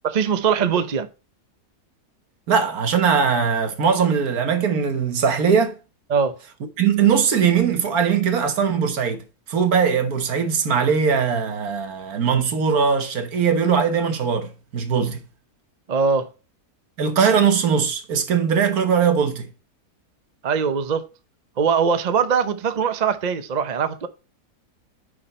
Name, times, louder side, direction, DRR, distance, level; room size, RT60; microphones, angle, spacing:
voice 1, 0.0-1.1 6.1-6.3 15.9-16.3 20.4-21.0 21.6-24.1, right 6 dB, 40° right, 0.6 m, -21 dB
voice 2, 2.5-5.7 6.8-9.2 9.5-15.2 17.0-19.5, right 6 dB, 70° right, 1.6 m, -20 dB
9.7 x 4.8 x 4.2 m
omnidirectional pair, 1.7 m